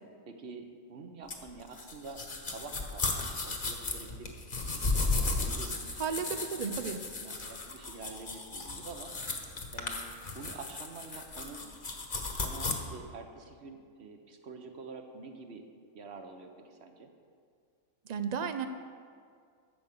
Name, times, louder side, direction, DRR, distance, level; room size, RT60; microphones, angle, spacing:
voice 1, 0.3-4.3 5.0-9.1 9.7-10.0 10.3-11.7 12.3-15.6 15.9-17.1, right 4 dB, 50° right, 5 dB, 1.2 m, -47 dB
sound 1, 1.3-12.7, left 3 dB, 40° left, 1.3 m, -35 dB
voice 2, 6.0-7.0 18.1-18.7, right 6 dB, 80° right, 8 dB, 0.3 m, -33 dB
12.0 x 6.9 x 6.7 m, 2.1 s
omnidirectional pair, 1.5 m